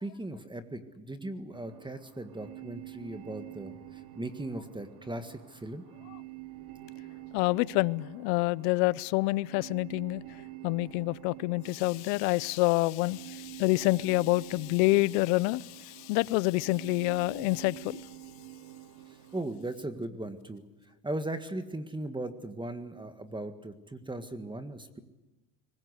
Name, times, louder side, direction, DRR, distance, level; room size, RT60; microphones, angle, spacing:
voice 1, 0.0-5.8 19.1-20.6 21.0-25.0, right 1 dB, 10° right, 1.8 m, -38 dB
sound 1, 1.5-19.4, right 15 dB, 50° right, 2.3 m, -48 dB
voice 2, 7.3-10.2 10.6-18.0, left 21 dB, 80° left, 0.8 m, -27 dB
23.5 x 21.0 x 8.3 m
supercardioid pair, 120°, 46 cm